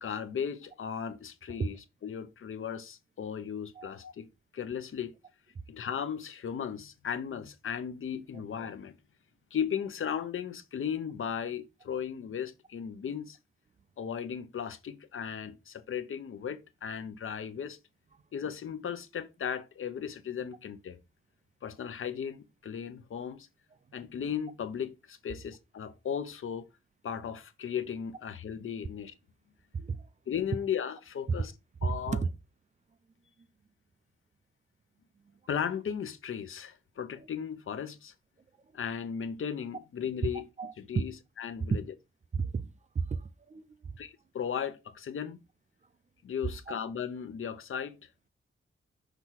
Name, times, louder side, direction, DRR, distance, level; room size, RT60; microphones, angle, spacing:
voice 1, 0.0-1.8 2.0-5.1 5.7-9.0 9.5-13.4 14.0-17.8 18.3-21.0 21.6-23.5 23.9-26.7 27.0-29.1 30.3-31.5 31.8-32.2 35.5-38.1 38.7-40.5 40.9-41.1 41.4-41.8 44.0-45.4 46.2-48.0, left 8 dB, 75° left, 0.9 m, -36 dB
voice 2, 29.7-30.1 31.3-31.4 31.8-32.3 37.2-37.3 40.6-40.7 41.6-41.8 42.3-43.9 46.7-46.8, right 5 dB, 35° right, 0.4 m, -33 dB
6.1 x 3.4 x 5.8 m
wide cardioid pair, 170°, 21 cm